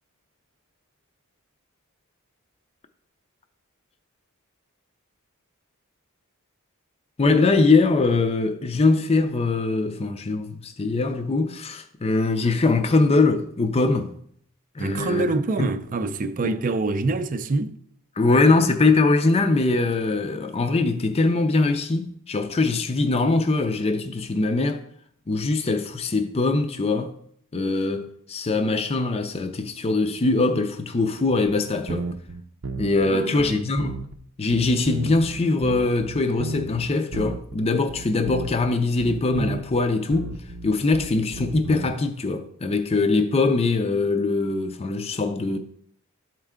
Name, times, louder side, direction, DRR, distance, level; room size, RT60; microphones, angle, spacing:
voice 1, 7.2-14.1 14.8-15.2 16.4-16.6 18.2-24.8 25.3-27.1 27.5-32.1 32.8-33.9 34.4-40.3 40.6-45.6, left 3 dB, 30° left, 0.5 m, -22 dB
voice 2, 14.8-17.8 33.1-33.7, right 3 dB, 40° right, 0.5 m, -26 dB
sound 1, 31.9-33.1 33.4-34.2 34.5-37.6 37.9-38.7 39.0-39.8 40.1-41.9, right 3 dB, 85° right, 0.6 m, -32 dB
12.0 x 4.4 x 3.6 m
head